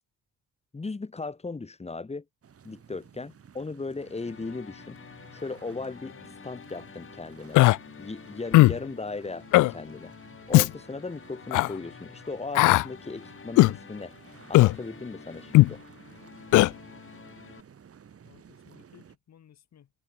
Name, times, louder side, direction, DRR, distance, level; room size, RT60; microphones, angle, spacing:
voice 1, 0.7-2.2 2.6-5.0 5.3-6.1 6.4-7.6 8.0-10.1 10.5-14.1 14.5-15.8, left 3 dB, 20° left, 2.0 m, -37 dB
sound 1, 2.4-19.2, right 7 dB, 50° right, 5.4 m, -54 dB
sound 2, 3.9-17.6, left 6 dB, 45° left, 4.3 m, -49 dB
Human voice, 7.5-7.8 8.5-8.8 9.5-9.7 10.5-10.7 11.5-11.7 12.5-12.9 13.6-13.8 14.5-14.8 15.5-15.7 16.5-16.7, left 19 dB, 85° left, 0.5 m, -17 dB
voice 2, 18.2-19.9, left 9 dB, 60° left, 6.7 m, -56 dB
cardioid pair, 90°, 30 cm